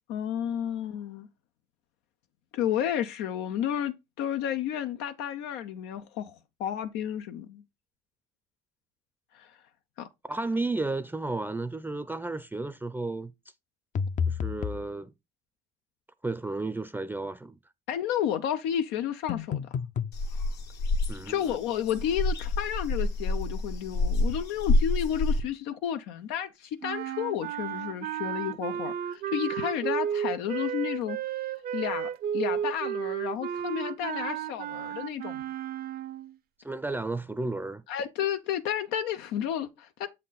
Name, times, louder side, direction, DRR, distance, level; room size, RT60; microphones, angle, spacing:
voice 1, 0.1-1.3 2.5-7.6 9.3-9.5 10.0-10.1 17.9-19.6 21.3-31.2 31.7-35.4 37.9-40.1, left 10 dB, 90° left, 0.6 m, -31 dB
voice 2, 10.3-13.3 14.3-15.1 16.2-17.6 21.1-21.6 36.6-37.8, right 2 dB, 10° right, 0.5 m, -33 dB
sound 1, 14.0-14.9 19.3-20.2, left 7 dB, 45° left, 0.5 m, -30 dB
sound 2, 20.1-25.4, left 2 dB, 70° left, 1.3 m, -27 dB
sound 3, 26.8-36.4, right 9 dB, 60° right, 0.6 m, -33 dB
7.3 x 4.3 x 4.0 m
cardioid pair, 90°, 18 cm